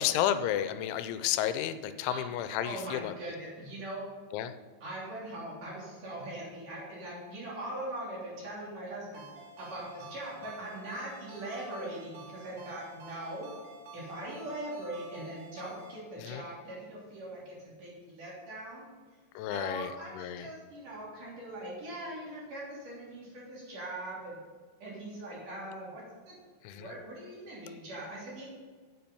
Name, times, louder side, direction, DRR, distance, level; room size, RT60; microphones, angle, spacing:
voice 1, 0.0-3.1 4.3-4.6 16.2-16.4 19.4-20.5 26.6-26.9, left 11 dB, 90° left, 11 dB, 3.0 m, -32 dB
voice 2, 2.5-4.1 4.8-9.3 9.6-13.5 13.9-18.9 19.5-24.4 24.8-26.3 26.7-28.4, right 1 dB, 45° right, -6 dB, 4.4 m, -41 dB
Ringtone, 9.1-16.0, right 2 dB, 65° right, 4.0 m, -50 dB
8.8 x 8.7 x 5.5 m, 1.5 s
omnidirectional pair, 5.3 m